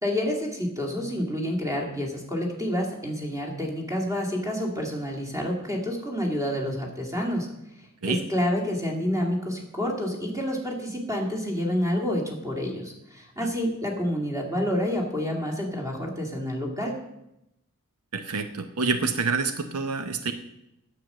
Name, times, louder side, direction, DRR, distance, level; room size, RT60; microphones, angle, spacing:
voice 1, 0.0-7.5 8.0-17.0, equal, 15° right, 0 dB, 2.1 m, -28 dB
voice 2, 18.1-20.3, right 4 dB, 80° right, 9 dB, 0.8 m, -27 dB
9.4 x 7.7 x 6.6 m, 0.85 s
head